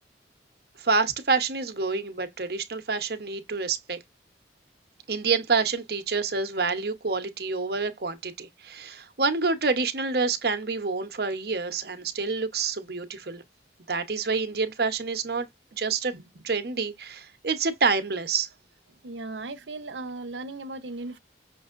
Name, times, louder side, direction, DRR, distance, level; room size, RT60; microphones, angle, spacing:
voice 1, 0.8-4.0 5.1-13.4 13.9-15.5 15.7-16.1 16.4-18.5, right 4 dB, 60° right, 0.9 m, -27 dB
voice 2, 19.0-21.2, right 2 dB, 90° right, 0.8 m, -37 dB
6.2 x 2.6 x 2.5 m
head